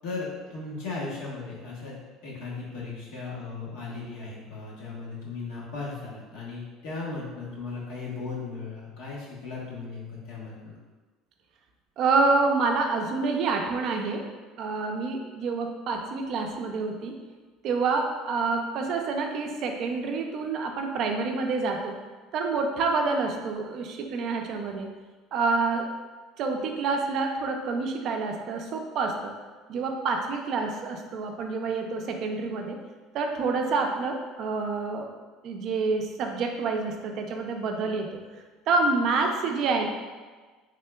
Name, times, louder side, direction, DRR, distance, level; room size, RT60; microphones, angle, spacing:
voice 1, 0.0-10.5, left 3 dB, 75° left, -5 dB, 1.1 m, -37 dB
voice 2, 12.0-14.3 14.6-17.2 17.6-22.0 22.3-24.9 25.3-25.9 26.4-29.3 29.7-32.8 33.1-35.1 35.4-38.2 38.7-39.9, right 4 dB, 50° right, 3 dB, 0.4 m, -27 dB
3.6 x 3.4 x 2.2 m, 1.3 s
cardioid pair, 130°, 0 cm